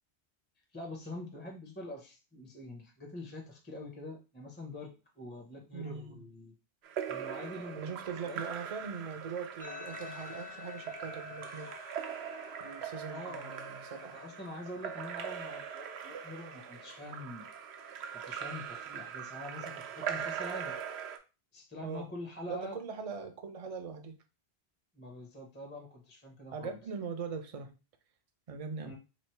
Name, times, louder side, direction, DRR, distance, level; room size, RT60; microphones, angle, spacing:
voice 1, 0.7-6.6 7.1-8.4 13.1-13.6 14.0-17.5 18.1-20.8 21.5-22.8 24.9-26.8 28.8-29.0, left 1 dB, 10° left, 0 dB, 0.6 m, -45 dB
voice 2, 5.7-6.2 7.8-11.7 12.6-14.2 21.8-22.1 22.5-24.2 26.5-27.7 28.5-29.0, right 5 dB, 45° right, 6 dB, 0.5 m, -41 dB
Splash splatter / Drip / Trickle dribble, 6.8-21.2, right 8 dB, 80° right, 0.8 m, -41 dB
sound 1, 9.6-18.6, left 8 dB, 55° left, 1.1 m, -51 dB
3.1 x 2.4 x 4.4 m, 0.30 s
omnidirectional pair, 1.1 m